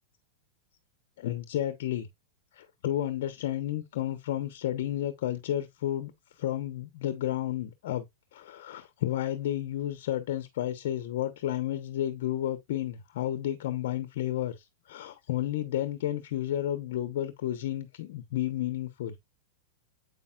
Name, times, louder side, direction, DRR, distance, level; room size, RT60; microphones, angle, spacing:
voice 1, 1.2-2.1 2.5-8.0 8.3-19.2, left 12 dB, 70° left, 1.0 m, -32 dB
8.3 x 5.4 x 2.4 m
hypercardioid pair, 125°, 0 cm